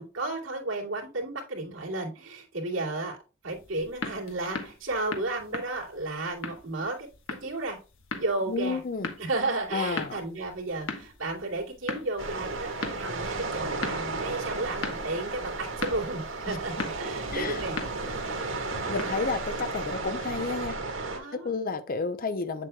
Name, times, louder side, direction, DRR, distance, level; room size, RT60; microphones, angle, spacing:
voice 1, 0.0-3.2 3.4-7.1 7.4-7.8 8.1-8.8 9.2-18.2 21.0-21.5, right 2 dB, 70° right, 2.8 m, -33 dB
sound 1, 3.5-20.0, left 3 dB, 80° left, 1.3 m, -40 dB
voice 2, 8.5-9.1 9.7-10.2 16.4-16.6 17.3-17.6 18.9-20.8 21.3-22.7, left 4 dB, 45° left, 0.7 m, -31 dB
sound 2, 12.2-21.2, right 3 dB, 85° right, 2.0 m, -33 dB
8.3 x 7.6 x 2.3 m
head